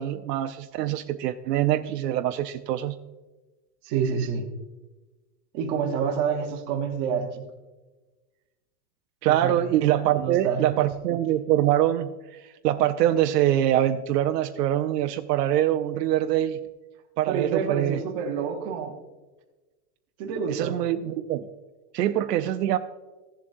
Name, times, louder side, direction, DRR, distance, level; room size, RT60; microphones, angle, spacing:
voice 1, 0.0-3.0 9.2-16.6 17.2-18.0 20.5-21.5 21.9-22.8, right 12 dB, 80° right, 7 dB, 0.7 m, -24 dB
voice 2, 3.8-4.5 5.5-7.4 9.3-9.6 10.1-10.7 17.3-19.0 20.2-20.8, right 6 dB, 25° right, 0 dB, 0.9 m, -28 dB
15.0 x 7.4 x 2.6 m, 1.2 s
supercardioid pair, 175°, 48 cm